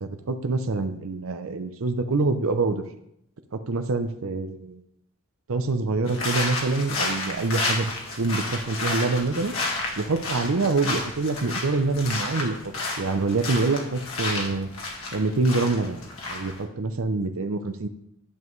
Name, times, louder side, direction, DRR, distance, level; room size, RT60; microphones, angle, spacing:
voice 1, 0.0-2.8 3.5-4.8 5.5-7.9 8.2-9.5 10.0-12.6 13.0-14.7 15.1-16.0 16.3-17.9, right 3 dB, 70° right, 8 dB, 0.6 m, -25 dB
sound 1, 6.1-16.6, left 2 dB, 70° left, 1.8 m, -31 dB
10.5 x 7.2 x 3.2 m, 0.76 s
head